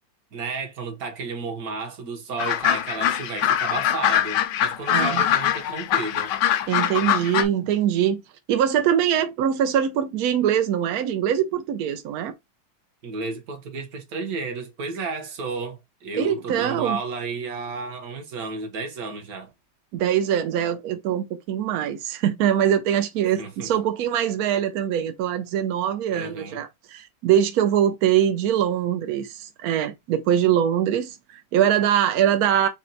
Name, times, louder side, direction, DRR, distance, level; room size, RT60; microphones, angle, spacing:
voice 1, 0.3-6.3 13.0-19.5 23.4-23.7 26.1-26.6, right 4 dB, 55° right, 1.3 m, -32 dB
sound 1, 2.4-7.5, left 11 dB, 75° left, 1.1 m, -23 dB
voice 2, 4.9-5.2 6.7-8.2 8.5-12.3 16.1-17.0 19.9-32.7, right 10 dB, 75° right, 0.8 m, -23 dB
4.2 x 2.1 x 3.8 m
omnidirectional pair, 2.1 m